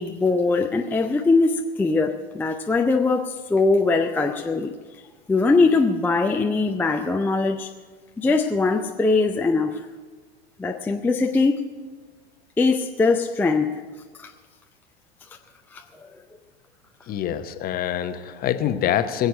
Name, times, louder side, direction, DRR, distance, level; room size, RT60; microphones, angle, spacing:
voice 1, 0.0-4.7 5.3-7.7 8.2-9.8 10.6-11.6 12.6-13.8 14.2-14.3 15.7-15.8, left 3 dB, 5° left, 3 dB, 0.5 m, -21 dB
voice 2, 17.1-19.3, left 10 dB, 30° left, 9 dB, 0.9 m, -25 dB
20.5 x 8.0 x 6.5 m, 1.4 s
figure-of-eight pair, 90°, 31 cm